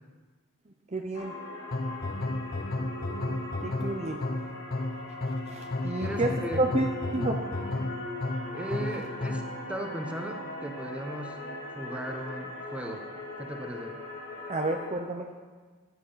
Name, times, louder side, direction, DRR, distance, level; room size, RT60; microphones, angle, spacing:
voice 1, 0.9-1.4 3.6-4.2 5.5-7.4 14.5-15.3, right 2 dB, 30° right, 4 dB, 0.9 m, -30 dB
sound 1, 1.1-14.9, left 1 dB, 70° left, 5.2 m, -40 dB
sound 2, 1.7-9.6, left 2 dB, 45° left, 0.7 m, -33 dB
voice 2, 6.0-6.6 8.5-9.4 9.7-11.4 11.7-13.0 13.4-14.0, right 1 dB, 5° right, 3 dB, 1.4 m, -37 dB
15.0 x 11.0 x 5.8 m, 1.4 s
head